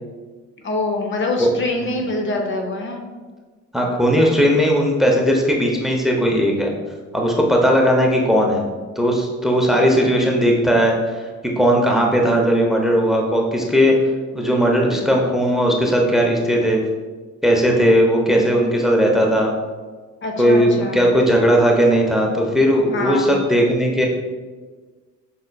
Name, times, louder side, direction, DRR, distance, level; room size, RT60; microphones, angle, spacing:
voice 1, 0.6-3.0 18.2-18.5 20.2-21.0 22.9-23.4, left 2 dB, 40° left, 2 dB, 0.6 m, -25 dB
voice 2, 3.7-6.7 7.1-8.6 9.0-11.3 11.6-13.9 14.3-16.8 17.4-19.5 20.4-24.1, equal, ahead, 0 dB, 0.7 m, -17 dB
5.5 x 3.8 x 2.2 m, 1.4 s
cardioid pair, 90°, 30 cm